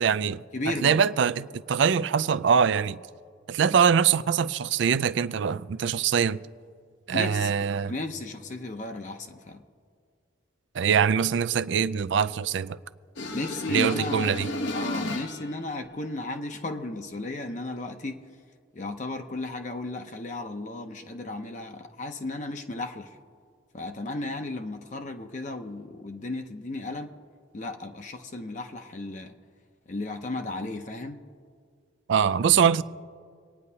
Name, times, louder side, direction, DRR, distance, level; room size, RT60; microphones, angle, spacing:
voice 1, 0.0-0.4 0.8-3.0 3.5-6.4 7.1-7.9 10.7-12.8 13.7-14.5 32.1-32.8, right 7 dB, 65° right, 0.4 m, -23 dB
voice 2, 0.5-1.0 7.1-7.5 7.9-9.6 13.3-14.4 14.7-18.2 18.7-23.1 23.7-27.1 27.5-29.3 29.9-31.2, left 2 dB, 40° left, 0.6 m, -34 dB
sound 1, 13.2-15.6, left 2 dB, 70° left, 0.8 m, -33 dB
26.5 x 9.7 x 2.8 m
head